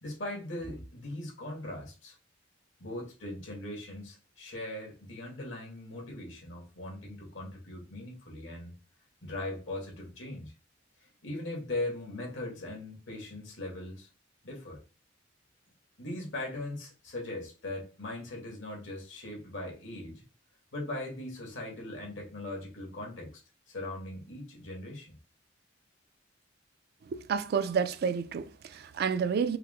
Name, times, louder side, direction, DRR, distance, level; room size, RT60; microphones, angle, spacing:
voice 1, 0.0-2.2 2.8-8.7 9.2-10.5 11.0-14.1 14.4-14.8 16.0-20.2 20.7-23.4 23.7-25.2, left 1 dB, 75° left, 1.7 m, -39 dB
voice 2, 27.1-29.6, right 6 dB, 55° right, 0.3 m, -30 dB
4.7 x 2.0 x 3.7 m
head